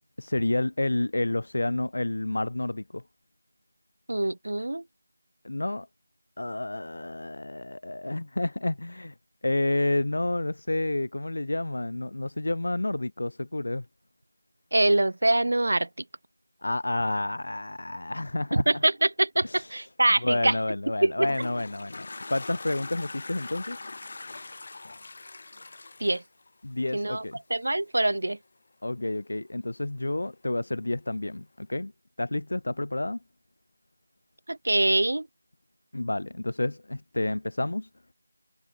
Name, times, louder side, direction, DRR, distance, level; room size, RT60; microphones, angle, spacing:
voice 1, 0.2-3.0 5.4-5.9 6.4-9.1 9.4-13.9 16.6-18.8 19.4-19.9 20.2-23.8 26.6-27.4 28.8-31.9 32.2-33.2 35.9-37.9, left 2 dB, 60° left, 1.9 m, -30 dB
voice 2, 4.1-4.8 14.7-15.9 18.5-20.5 21.0-21.3 26.0-26.2 26.9-27.2 27.5-28.4 34.5-35.3, right 1 dB, 65° right, 2.1 m, -24 dB
Toilet flush, 20.9-27.2, left 3 dB, 45° left, 2.0 m, -42 dB
figure-of-eight pair, 170°, 0 cm